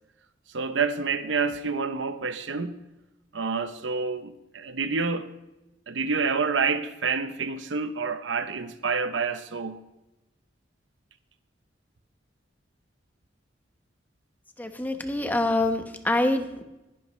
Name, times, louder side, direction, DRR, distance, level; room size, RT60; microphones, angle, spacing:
voice 1, 0.5-2.8 3.3-5.3 5.9-9.8, right 5 dB, 85° right, 11 dB, 0.9 m, -28 dB
voice 2, 14.6-16.6, left 2 dB, 10° left, 6 dB, 1.0 m, -25 dB
20.5 x 11.0 x 3.2 m, 0.98 s
head